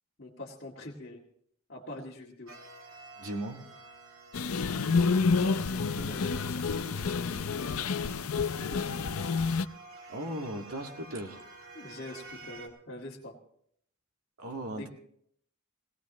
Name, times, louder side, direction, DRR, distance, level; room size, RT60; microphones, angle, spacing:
voice 1, 0.2-1.2 1.7-2.5 5.5-7.9 8.4-8.9 11.7-13.3 14.7-14.9, left 1 dB, 45° left, -5 dB, 2.0 m, -44 dB
sound 1, 2.5-12.7, right 2 dB, 65° right, 2.7 m, -50 dB
voice 2, 3.2-3.7 10.1-11.4 14.4-14.9, right 1 dB, 85° right, 2 dB, 2.0 m, -37 dB
sound 2, 4.3-9.6, left 4 dB, 80° left, 0.6 m, -29 dB
19.0 x 17.5 x 3.1 m, 0.66 s
head